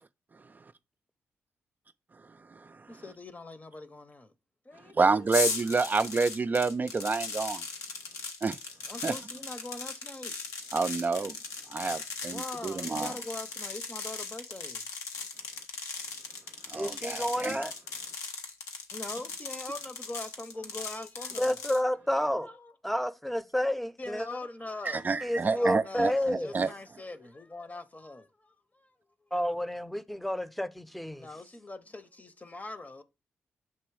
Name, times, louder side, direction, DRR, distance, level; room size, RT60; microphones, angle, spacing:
voice 1, 2.9-4.3 4.6-5.6 8.9-10.3 10.9-11.4 12.3-14.9 18.9-21.6 22.4-22.7 24.0-25.0 25.4-28.9 31.2-33.0, left 2 dB, 30° left, 0.8 m, -42 dB
voice 2, 4.9-7.6 8.4-8.6 9.0-9.1 10.7-11.4 11.7-13.1 16.7-17.6 24.9-26.7, right 4 dB, 35° right, 0.3 m, -28 dB
sound 1, 5.3-21.8, left 4 dB, 80° left, 0.8 m, -38 dB
voice 3, 16.7-17.7 21.4-22.5 22.8-24.3 25.2-26.5 29.3-31.3, equal, ahead, 0.6 m, -30 dB
6.8 x 3.0 x 4.7 m
supercardioid pair, 40°, 5 cm